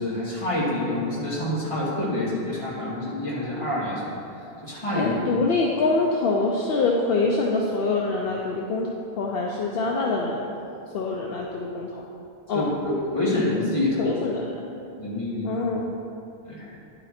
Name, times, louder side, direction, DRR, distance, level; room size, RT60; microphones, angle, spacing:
voice 1, 0.0-4.0 4.6-5.1 12.5-14.1 15.0-15.6 16.4-16.7, left 1 dB, 30° left, -8 dB, 2.3 m, -27 dB
voice 2, 4.9-8.9 9.2-10.5 10.9-12.0 12.5-12.7 14.0-14.6 15.4-15.9, left 3 dB, 70° left, -1 dB, 0.9 m, -25 dB
10.0 x 5.5 x 4.3 m, 2.7 s
omnidirectional pair, 1.1 m